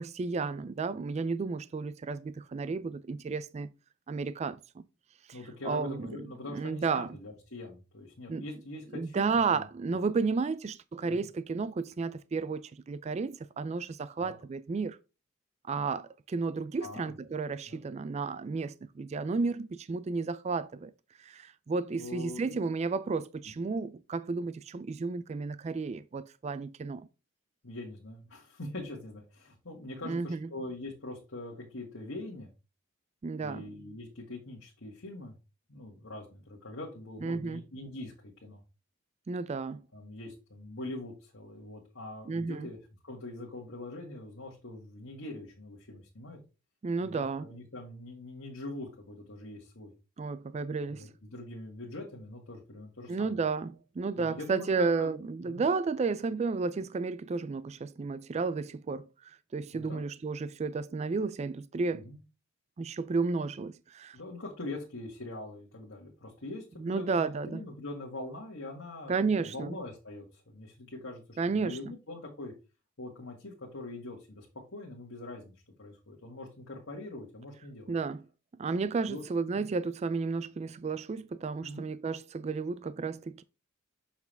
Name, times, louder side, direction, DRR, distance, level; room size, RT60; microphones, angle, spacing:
voice 1, 0.0-3.7 4.1-4.8 5.3-5.4 5.6-6.2 6.5-7.2 8.3-8.4 8.9-15.0 15.7-20.9 21.2-27.1 30.0-30.5 33.2-33.6 37.2-37.6 39.3-39.8 42.3-42.7 46.8-47.5 50.2-51.1 53.1-62.1 62.8-64.2 66.8-67.6 69.1-69.8 71.4-71.8 77.9-78.2 78.6-83.4, right 4 dB, 30° right, 0.3 m, -32 dB
voice 2, 5.3-9.7 11.0-11.3 14.2-14.3 16.8-17.1 17.7-17.8 21.9-22.4 27.6-32.5 33.4-35.4 35.7-38.6 39.9-42.8 43.0-46.4 47.0-49.9 50.9-53.4 54.2-55.1 55.4-55.6 59.7-60.0 61.9-62.2 64.1-72.5 73.0-75.5 75.8-77.9 79.1-79.2 79.6-79.7 81.6-81.9, left 2 dB, 70° left, 1.8 m, -43 dB
6.9 x 5.9 x 3.4 m
head